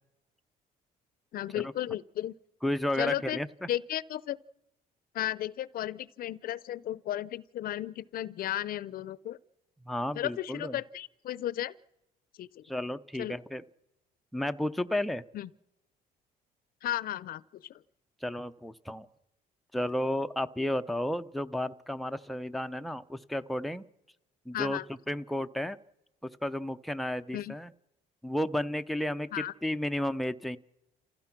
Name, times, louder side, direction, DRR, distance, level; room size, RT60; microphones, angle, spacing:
voice 1, 1.3-2.3 3.0-3.4 3.7-4.4 5.1-9.4 10.1-11.7 12.4-12.7 13.2-13.4 15.3-15.5 16.8-17.8 24.5-24.9 27.3-27.6 29.3-29.5, left 12 dB, 60° left, 20 dB, 0.7 m, -34 dB
voice 2, 2.6-3.5 9.9-10.7 12.7-13.6 14.3-15.2 18.2-19.1 19.7-23.8 24.5-24.8 25.1-25.8 26.2-27.7 28.2-30.6, left 1 dB, ahead, 8 dB, 0.6 m, -32 dB
28.0 x 15.5 x 6.0 m, 0.92 s
cardioid pair, 110°, 17 cm